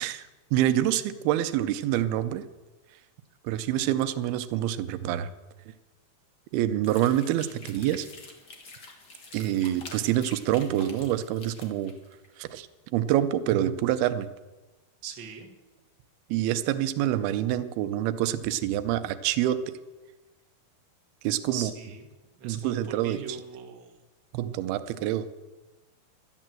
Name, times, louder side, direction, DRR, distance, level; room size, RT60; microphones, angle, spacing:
voice 1, 0.0-2.5 3.4-5.3 6.5-8.1 9.3-11.9 12.4-12.7 12.9-14.3 16.3-19.7 21.2-21.7 22.4-23.4 24.3-25.3, right 12 dB, 90° right, 12 dB, 2.6 m, -26 dB
sound 1, 6.8-12.3, left 3 dB, 40° left, 1.5 m, -47 dB
voice 2, 15.0-15.5 21.5-22.1 22.4-23.9, right 7 dB, 45° right, 2 dB, 1.6 m, -40 dB
12.0 x 11.0 x 7.6 m, 1.2 s
omnidirectional pair, 4.3 m